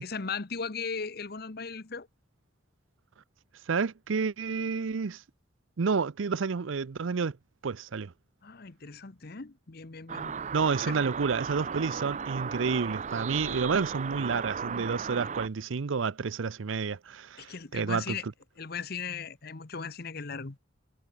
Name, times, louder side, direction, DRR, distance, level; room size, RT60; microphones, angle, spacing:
voice 1, 0.0-2.1 8.4-10.3 17.4-18.2 18.6-20.6, left 5 dB, 55° left, 1.1 m, -37 dB
voice 2, 3.7-5.2 5.8-7.4 7.6-8.1 10.5-18.2, right 5 dB, 90° right, 0.6 m, -30 dB
sound 1, 10.1-15.5, right 6 dB, 40° right, 0.6 m, -35 dB
head